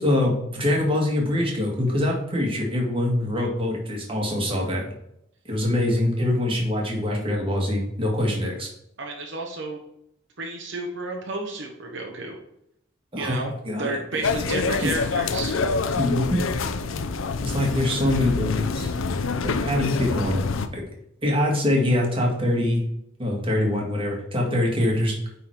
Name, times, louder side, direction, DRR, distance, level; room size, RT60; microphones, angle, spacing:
voice 1, 0.0-4.9 5.5-8.7 13.1-13.4 13.7-14.3 14.8-14.9 16.0-16.4 17.4-18.9 19.4-20.4 20.7-20.8 21.2-22.8 23.2-25.1, left 1 dB, 25° right, -1 dB, 1.8 m, -24 dB
voice 2, 9.0-9.8 10.4-12.4 13.1-13.5 13.8-15.6, right 2 dB, 65° right, 1 dB, 1.1 m, -31 dB
sound 1, 14.2-20.7, left 4 dB, 80° left, 0.6 m, -26 dB
9.0 x 4.1 x 4.5 m, 0.78 s
head